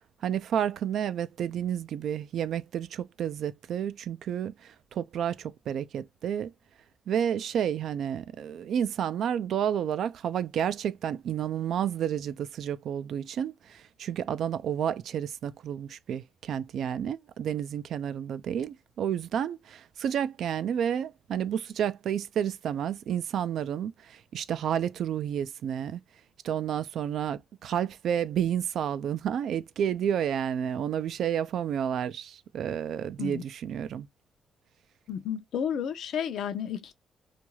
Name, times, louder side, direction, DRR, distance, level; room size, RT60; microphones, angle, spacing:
voice 1, 0.2-6.5 7.1-26.0 26.4-34.1, right 9 dB, 70° right, 0.3 m, -30 dB
voice 2, 35.1-36.9, left 8 dB, 75° left, 0.5 m, -32 dB
2.4 x 2.3 x 3.0 m
cardioid pair, 90°, 0 cm